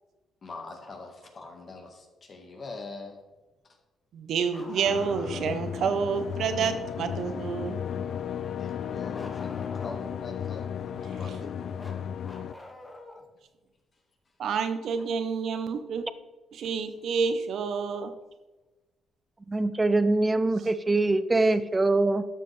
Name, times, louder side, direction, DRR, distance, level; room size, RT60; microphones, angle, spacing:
voice 1, 0.4-3.2 8.6-10.7 11.0-12.0, left 3 dB, 45° left, 2 dB, 1.7 m, -43 dB
voice 2, 4.1-7.8 11.0-11.4 14.4-16.1 16.5-18.1, right 6 dB, 70° right, 9 dB, 0.9 m, -29 dB
Bark, 4.5-5.6 9.1-10.2 11.8-13.3 15.0-15.1 17.0-17.1 18.2-18.3, left 2 dB, 20° left, 1.3 m, -46 dB
sound 1, 4.8-12.5, left 8 dB, 60° left, 0.4 m, -34 dB
voice 3, 19.5-22.3, right 2 dB, 20° right, 13 dB, 0.5 m, -23 dB
12.0 x 6.7 x 3.4 m, 1.1 s
cardioid pair, 90°, 0 cm